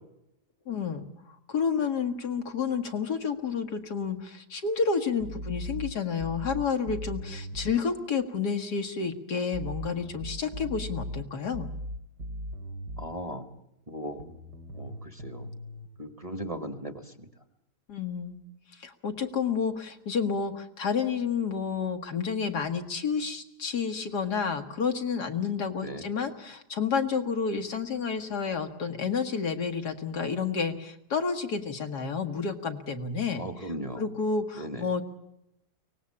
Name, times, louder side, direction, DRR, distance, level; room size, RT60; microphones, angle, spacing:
voice 1, 0.7-1.1 1.5-11.7 17.9-18.4 18.7-35.0, left 5 dB, 80° left, 6 dB, 2.1 m, -30 dB
sound 1, 5.2-7.8 9.5-13.1 14.2-15.9, equal, 90° right, 3.1 m, -38 dB
voice 2, 13.0-13.5 13.9-14.2 14.7-15.5 16.0-17.3 25.8-26.0 33.4-34.0 34.6-34.8, right 1 dB, 25° right, 9 dB, 1.4 m, -37 dB
23.5 x 18.5 x 8.6 m, 0.83 s
omnidirectional pair, 1.7 m